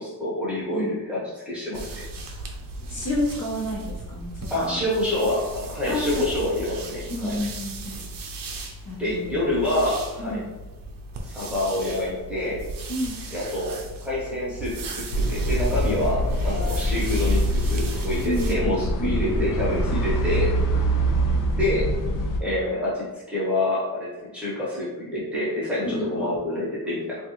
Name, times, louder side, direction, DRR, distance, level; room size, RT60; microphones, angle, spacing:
voice 1, 0.0-2.0 4.5-7.4 9.0-10.4 11.2-12.6 13.3-20.5 21.5-21.9 22.4-27.2, left 1 dB, 5° right, -8 dB, 0.9 m, -27 dB
sound 1, 1.7-18.5, right 2 dB, 60° right, 0.5 m, -37 dB
voice 2, 2.9-4.8 5.9-6.2 7.1-8.0 8.9-9.3 10.2-10.5 12.9-13.2 18.2-18.6 19.0-19.3 19.9-20.1 25.9-26.2, left 1 dB, 40° left, -5 dB, 0.9 m, -29 dB
sound 2, 15.1-22.4, right 1 dB, 55° left, 0.5 m, -24 dB
3.5 x 2.4 x 2.9 m, 1.2 s
wide cardioid pair, 160°, 38 cm